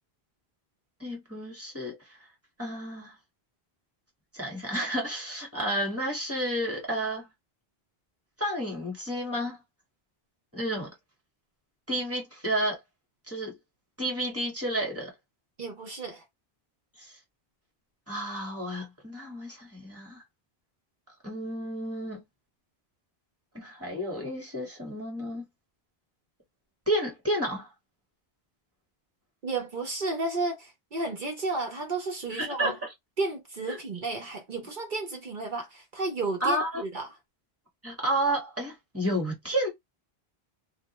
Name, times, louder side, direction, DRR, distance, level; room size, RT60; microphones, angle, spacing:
voice 1, 1.0-2.2 2.6-3.1 4.3-7.3 8.4-9.6 10.5-10.9 11.9-12.8 13.3-13.6 14.0-15.1 17.0-17.2 18.1-20.2 21.2-22.2 23.5-25.4 26.9-27.7 32.4-32.8 33.7-33.8 36.4-36.8 37.8-39.7, right 1 dB, 15° right, 1.2 m, -31 dB
voice 2, 15.6-16.2 29.4-32.7 33.2-37.1, right 3 dB, 55° right, 0.9 m, -32 dB
2.4 x 2.2 x 2.9 m
omnidirectional pair, 1.0 m